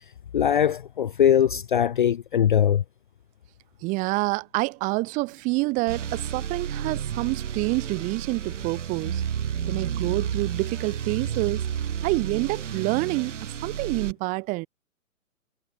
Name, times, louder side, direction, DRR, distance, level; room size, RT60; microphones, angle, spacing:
voice 1, 0.3-2.8, left 9 dB, 35° left, 0.6 m, -21 dB
voice 2, 3.8-9.2 9.7-11.6 12.0-14.7, right 24 dB, 20° right, 2.2 m, -27 dB
sound 1, 5.9-14.1, right 8 dB, 55° right, 6.7 m, -31 dB
hypercardioid pair, 160°, 42 cm